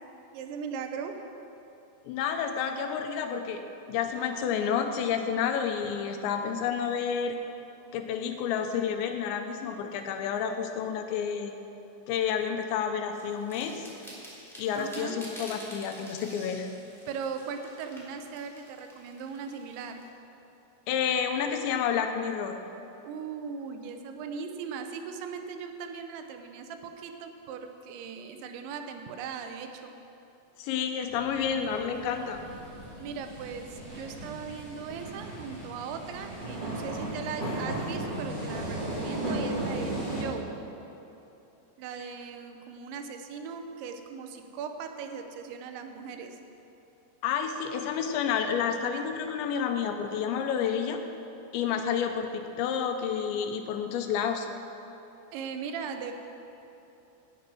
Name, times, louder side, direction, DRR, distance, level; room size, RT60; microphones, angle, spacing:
voice 1, 0.3-1.2 14.8-15.2 17.1-20.1 23.0-30.0 33.0-40.6 41.8-46.4 55.3-56.1, right 6 dB, 85° right, 6 dB, 3.2 m, -39 dB
voice 2, 2.1-3.6 3.9-7.4 7.9-11.5 12.1-13.9 14.6-16.7 20.9-22.6 30.6-32.4 47.2-51.0 51.5-54.5, left 7 dB, 85° left, 6 dB, 3.1 m, -30 dB
sound 1, 13.2-20.0, equal, ahead, 2.5 m, -48 dB
sound 2, 31.1-40.2, right 1 dB, 25° right, 3.9 m, -36 dB
18.0 x 7.8 x 6.1 m, 3.0 s
omnidirectional pair, 5.2 m